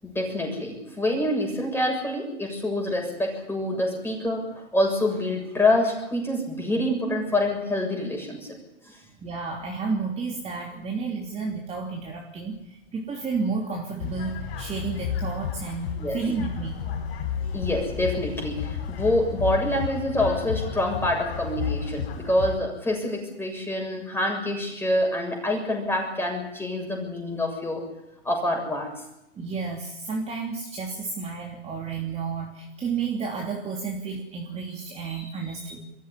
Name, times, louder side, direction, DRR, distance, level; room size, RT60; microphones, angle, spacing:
voice 1, 0.0-4.5 4.7-8.5 8.8-9.0 16.0-16.2 17.5-27.8 28.2-28.9, left 1 dB, 5° left, 2 dB, 7.1 m, -26 dB
voice 2, 9.2-16.8 29.4-35.8, right 4 dB, 20° right, -1 dB, 3.1 m, -31 dB
sound 1, 14.0-22.6, left 7 dB, 60° left, 5.2 m, -32 dB
23.0 x 14.5 x 9.8 m, 0.89 s
hypercardioid pair, 130°, 35 cm